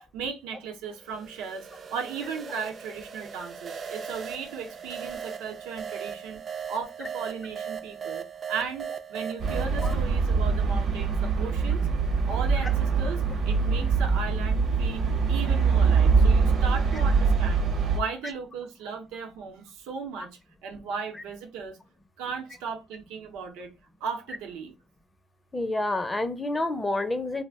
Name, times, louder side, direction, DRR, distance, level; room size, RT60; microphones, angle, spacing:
voice 1, 0.0-11.9 12.2-20.3 20.6-21.8 22.2-23.7 24.0-24.7, right 6 dB, 90° right, 0.7 m, -36 dB
sound 1, 1.0-10.0, right 7 dB, 45° right, 0.4 m, -38 dB
sound 2, 9.4-18.0, right 5 dB, 60° right, 0.8 m, -23 dB
voice 2, 25.5-27.4, left 2 dB, 15° left, 0.5 m, -28 dB
2.4 x 2.0 x 3.4 m
cardioid pair, 85°, 0 cm